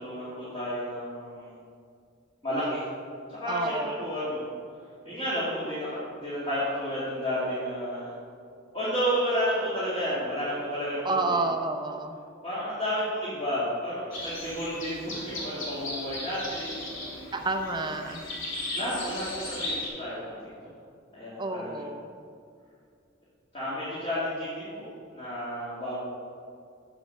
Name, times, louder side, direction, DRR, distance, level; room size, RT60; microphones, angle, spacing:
voice 1, 0.0-1.5 2.4-2.8 3.3-4.4 5.0-8.1 8.7-11.2 12.4-17.3 18.7-20.5 21.1-21.9 23.5-24.8 25.1-26.0, equal, 30° left, -11 dB, 2.2 m, -31 dB
voice 2, 3.5-4.0 11.0-12.2 17.3-18.2 21.4-22.1, right 3 dB, 20° right, 5 dB, 0.6 m, -30 dB
sound 1, 14.1-19.9, left 1 dB, 70° left, 2.2 m, -36 dB
7.4 x 7.2 x 5.5 m, 2.3 s
head